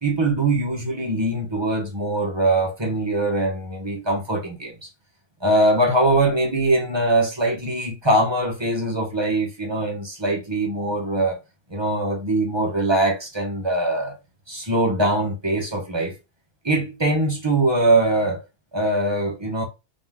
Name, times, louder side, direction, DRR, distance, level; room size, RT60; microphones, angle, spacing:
voice 1, 0.0-4.9 5.4-11.4 11.7-14.2 14.5-16.2 16.6-18.4 18.7-19.6, right 1 dB, 25° right, 1.1 m, -22 dB
3.9 x 2.8 x 3.7 m
omnidirectional pair, 1.2 m